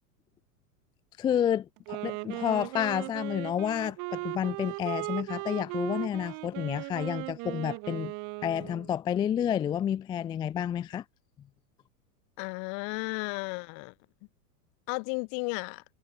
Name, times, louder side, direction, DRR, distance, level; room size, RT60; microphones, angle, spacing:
voice 1, 1.2-8.1 8.4-11.0, left 9 dB, 10° left, 0.3 m, -30 dB
Wind instrument woodwind instrument, 1.8-8.9, right 28 dB, 40° right, 0.8 m, -37 dB
voice 2, 12.4-13.9 14.9-15.8, left 40 dB or more, 45° left, 1.1 m, -34 dB
hypercardioid pair, 120°, 49 cm